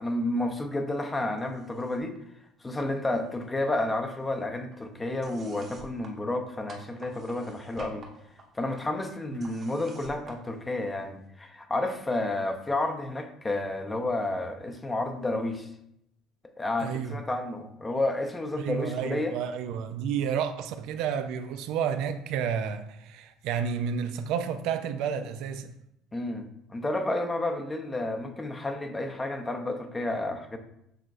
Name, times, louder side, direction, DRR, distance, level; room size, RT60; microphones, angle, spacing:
voice 1, 0.0-2.2 2.6-8.0 8.5-15.7 16.6-19.3 26.1-30.6, left 2 dB, 20° left, 0.6 m, -31 dB
sound 1, 1.4-2.2 2.4-3.5 3.7-11.3, right 3 dB, 40° right, 1.0 m, -52 dB
voice 2, 16.8-17.2 18.6-25.7, right 7 dB, 70° right, 0.3 m, -31 dB
6.5 x 3.1 x 2.5 m
supercardioid pair, 85°, 0 cm